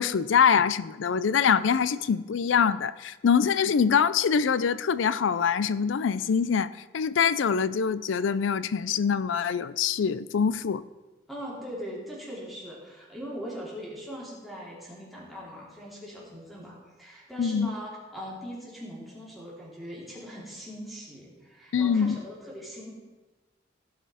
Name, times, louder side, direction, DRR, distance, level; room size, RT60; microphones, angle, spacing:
voice 1, 0.0-10.8 17.4-17.7 21.7-22.2, left 6 dB, 80° left, 17 dB, 0.4 m, -24 dB
voice 2, 11.3-22.9, equal, ahead, -6 dB, 3.0 m, -40 dB
16.5 x 5.6 x 4.9 m, 1.2 s
head